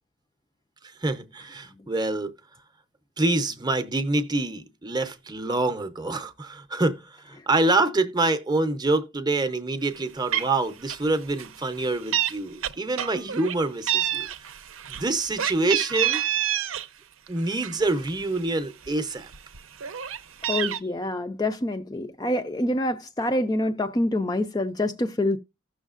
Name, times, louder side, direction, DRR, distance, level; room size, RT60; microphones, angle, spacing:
voice 1, 0.8-2.3 3.2-14.3 14.9-16.2 17.3-19.3, right 2 dB, 20° right, 0.6 m, -26 dB
Meow, 9.9-10.0 10.3-10.6 10.8-11.1 11.4-12.3 12.6-13.5 13.9-16.9 17.3-18.4 18.8-18.9 19.2-20.8, right 10 dB, 75° right, 0.6 m, -28 dB
voice 2, 20.5-25.4, left 1 dB, 20° left, 0.4 m, -26 dB
15.5 x 6.3 x 2.4 m
head